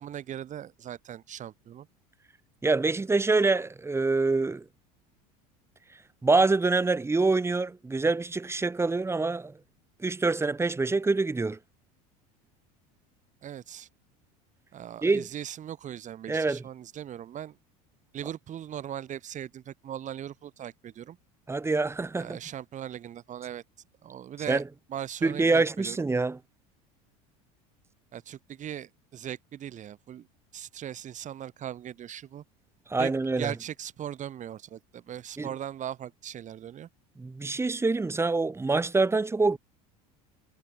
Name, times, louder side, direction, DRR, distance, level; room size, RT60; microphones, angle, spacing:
voice 1, 0.0-1.9 13.4-13.9 14.7-17.6 18.1-21.2 22.2-23.6 24.0-24.6 24.9-26.0 28.1-30.3 30.5-32.4 33.0-33.1 33.4-36.9, right 10 dB, 40° right, 3.8 m, -39 dB
voice 2, 2.6-4.6 6.2-9.5 10.0-11.6 15.0-15.3 16.3-16.6 21.5-22.4 24.5-24.6 25.2-26.4 32.9-33.5 35.4-35.5 37.2-39.6, right 3 dB, 15° right, 2.5 m, -25 dB
supercardioid pair, 110°, 20 cm